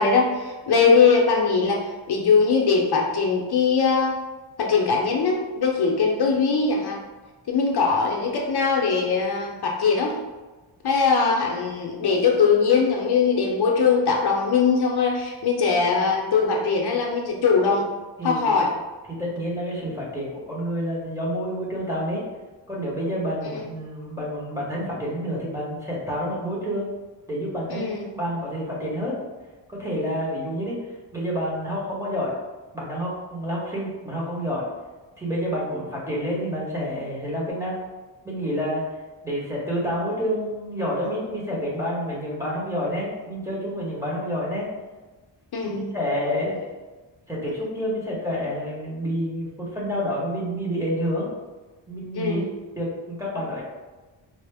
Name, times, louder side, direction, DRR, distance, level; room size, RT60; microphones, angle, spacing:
voice 1, 0.0-4.2 4.6-7.0 7.5-10.2 10.8-17.8 18.2-18.7 23.4-23.6 27.7-28.1 45.5-46.0 46.2-46.5 52.1-52.5, left 5 dB, 60° left, -1 dB, 0.6 m, -21 dB
voice 2, 18.2-18.6 19.2-22.2 22.7-26.9 27.3-29.2 29.7-30.8 31.1-32.3 32.7-34.7 35.2-37.8 38.2-38.8 39.2-44.7 45.6-46.6 47.3-51.3 51.9-52.4 52.7-53.6, equal, 5° right, -6 dB, 0.8 m, -28 dB
4.2 x 2.0 x 3.3 m, 1.2 s
wide cardioid pair, 145°, 45 cm